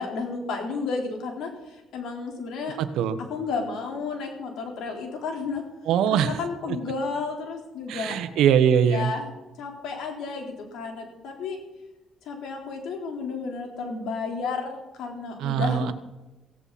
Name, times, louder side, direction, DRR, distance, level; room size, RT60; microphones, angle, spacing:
voice 1, 0.0-2.8 3.3-5.6 6.1-8.2 8.8-9.3 9.6-11.6 12.3-15.9, left 4 dB, 85° left, 1 dB, 4.1 m, -32 dB
voice 2, 2.8-3.2 5.9-6.4 7.9-9.1 15.4-15.9, right 8 dB, 85° right, 11 dB, 1.2 m, -22 dB
17.0 x 16.5 x 4.3 m, 1.0 s
cardioid pair, 90°, 0 cm